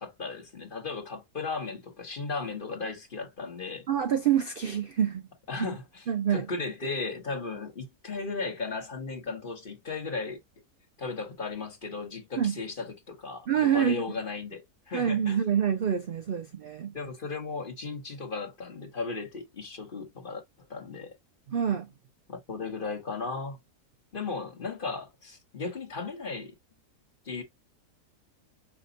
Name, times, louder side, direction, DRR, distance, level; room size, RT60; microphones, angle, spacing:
voice 1, 0.0-3.9 5.5-10.4 11.0-15.4 16.9-20.4 20.7-21.1 22.3-23.6 24.1-26.5 27.2-27.4, left 4 dB, 35° left, 1.2 m, -36 dB
voice 2, 3.9-5.2 5.6-5.7 6.1-6.5 12.4-12.5 13.5-14.0 14.9-16.9 21.5-21.9, right 9 dB, 60° right, 0.5 m, -26 dB
5.9 x 2.3 x 3.8 m
omnidirectional pair, 1.7 m